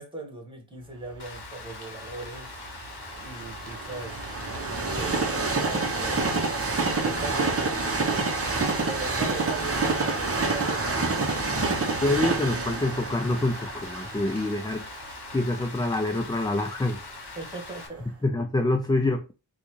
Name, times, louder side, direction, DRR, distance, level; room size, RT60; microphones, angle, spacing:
voice 1, 0.0-2.5 3.2-4.2 4.7-6.3 7.0-7.6 8.9-11.5 17.3-18.1, right 3 dB, 10° right, 1.5 m, -39 dB
Rain, 1.2-17.9, left 4 dB, 50° left, 1.1 m, -43 dB
Train, 1.3-17.3 17.8-17.9, right 3 dB, 30° right, 0.8 m, -28 dB
voice 2, 12.0-14.8 15.3-17.0 18.2-19.3, left 2 dB, 10° left, 0.4 m, -26 dB
3.9 x 2.4 x 3.0 m
cardioid pair, 55°, 49 cm